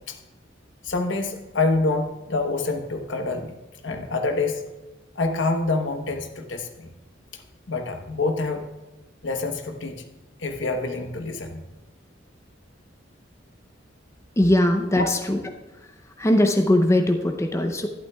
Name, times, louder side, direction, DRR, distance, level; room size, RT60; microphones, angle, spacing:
voice 1, 0.8-3.5 3.8-4.6 5.2-6.9 7.3-7.4 7.7-8.6 9.2-10.0 10.4-11.6 14.9-15.1, left 3 dB, 80° left, 5 dB, 1.1 m, -26 dB
voice 2, 14.4-15.4 16.2-17.9, left 1 dB, 15° left, 4 dB, 0.6 m, -20 dB
11.5 x 11.5 x 2.3 m, 1.1 s
head